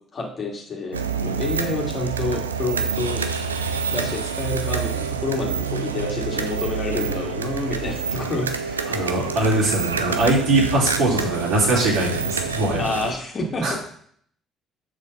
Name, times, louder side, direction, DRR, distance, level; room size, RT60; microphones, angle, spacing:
voice 1, 0.1-3.2 3.9-8.8 12.8-13.8, left 3 dB, 45° left, 0 dB, 1.8 m, -28 dB
sound 1, 0.9-13.1, right 5 dB, 90° right, 0.4 m, -27 dB
voice 2, 8.8-12.9 13.6-13.8, right 2 dB, 65° right, -5 dB, 2.6 m, -21 dB
6.5 x 5.1 x 5.7 m, 0.63 s
figure-of-eight pair, 50°, 0 cm